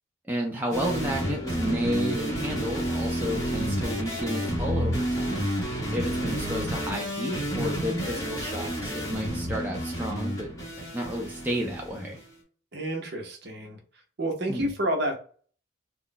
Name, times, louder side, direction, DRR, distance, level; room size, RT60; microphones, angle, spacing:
voice 1, 0.3-5.5 5.9-10.5 10.9-12.2 14.5-14.7, equal, 10° right, -1 dB, 0.4 m, -31 dB
sound 1, 0.7-12.2, equal, 15° left, 0.8 m, -30 dB
voice 2, 12.7-13.8 14.2-15.2, right 1 dB, 55° right, 3 dB, 0.7 m, -29 dB
2.3 x 2.0 x 3.8 m, 0.43 s
head